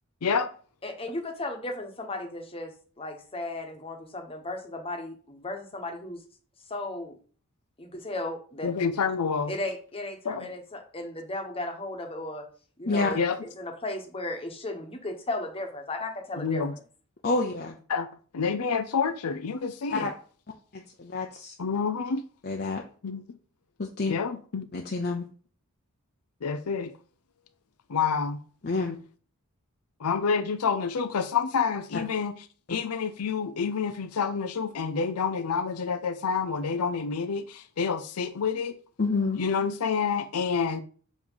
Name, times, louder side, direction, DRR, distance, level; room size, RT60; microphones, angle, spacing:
voice 1, 0.8-6.2 6.7-7.2 7.8-8.7 9.5-12.4 12.8-16.6, left 2 dB, 25° left, 1.1 m, -35 dB
voice 2, 8.6-9.5 10.2-10.5 13.1-13.4 16.4-16.7 17.9-18.1 18.3-20.1 21.6-22.2 23.0-23.2 24.1-24.7 26.4-26.9 27.9-28.4 30.0-32.3 32.7-38.7 39.4-40.8, left 5 dB, 85° left, 0.6 m, -28 dB
voice 3, 17.2-17.8 19.9-20.1 20.7-21.5 22.4-22.8 23.8-24.1 24.7-25.2 28.6-29.0 39.0-39.4, left 3 dB, 45° left, 0.7 m, -28 dB
7.2 x 3.1 x 5.5 m
head